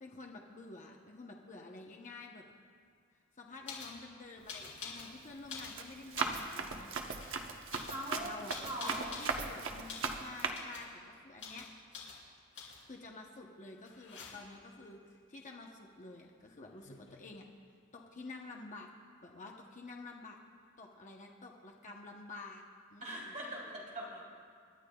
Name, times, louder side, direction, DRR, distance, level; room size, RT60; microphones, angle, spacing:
voice 1, 0.0-2.5 3.4-6.9 8.1-8.5 8.8-11.7 12.6-15.0 15.3-17.5 17.9-18.9 19.2-20.4 20.8-22.6 22.9-23.3, left 3 dB, 35° left, 0 dB, 0.9 m, -50 dB
sound 1, 3.6-4.0 4.5-5.1 5.4-6.5 7.0-7.3 7.7-9.4 9.9-10.2 10.5-10.9 11.4-11.7 11.9-12.2 12.5-12.9 13.8-14.6 16.4-16.5 16.7-17.3, left 5 dB, 65° left, 3.1 m, -47 dB
Run, 4.4-4.8 5.2-10.5, right 4 dB, 65° right, 0.9 m, -38 dB
voice 2, 7.9-9.2 23.0-24.3, right 1 dB, 40° right, -3 dB, 3.2 m, -42 dB
27.0 x 12.0 x 2.3 m, 2.1 s
head